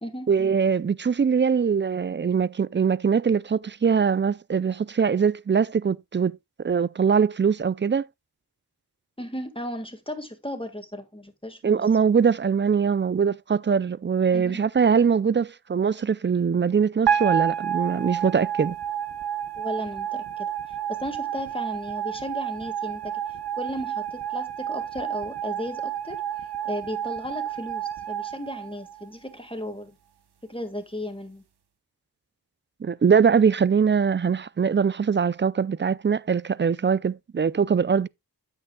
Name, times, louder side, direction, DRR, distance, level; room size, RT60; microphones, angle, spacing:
voice 1, 0.3-6.4 6.6-8.1 11.6-18.8 32.8-38.1, right 6 dB, 30° right, 0.4 m, -22 dB
voice 2, 9.2-11.8 14.3-14.6 19.6-20.5 20.9-23.2 23.6-26.2 26.6-30.0 30.5-31.4, left 1 dB, 15° left, 1.6 m, -35 dB
sound 1, 17.1-29.3, right 9 dB, 85° right, 0.9 m, -30 dB
9.5 x 8.3 x 2.2 m
wide cardioid pair, 45°, 39 cm